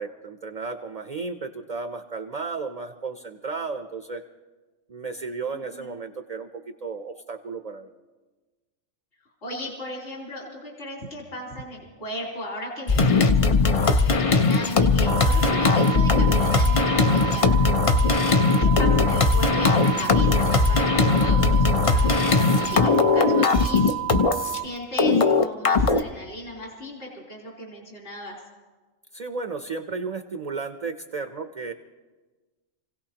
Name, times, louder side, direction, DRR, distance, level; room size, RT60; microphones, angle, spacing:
voice 1, 0.0-4.2 4.9-7.9 29.1-31.7, right 4 dB, 45° right, 7 dB, 0.5 m, -33 dB
voice 2, 5.5-5.9 9.4-17.6 18.2-23.9 24.6-28.4, equal, 60° left, -4 dB, 3.6 m, -37 dB
sound 1, 12.9-24.6 25.0-26.0, left 4 dB, 45° left, 0.4 m, -19 dB
sound 2, 15.1-24.7, right 16 dB, 70° right, 1.0 m, -31 dB
28.5 x 16.5 x 2.9 m, 1.3 s
omnidirectional pair, 1.3 m